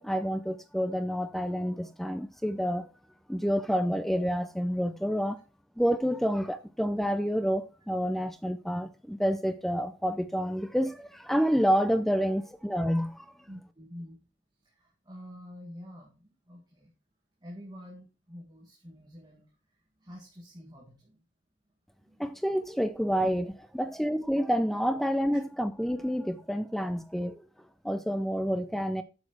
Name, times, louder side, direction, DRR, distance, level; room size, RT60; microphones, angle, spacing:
voice 1, 0.0-2.9 3.3-5.4 5.8-13.3 22.2-27.4 27.8-29.0, equal, ahead, 0.5 m, -28 dB
voice 2, 13.5-14.2 14.7-16.9 17.4-19.5 20.0-21.2 22.0-22.2, equal, 20° right, 1.9 m, -47 dB
8.9 x 6.4 x 4.3 m
head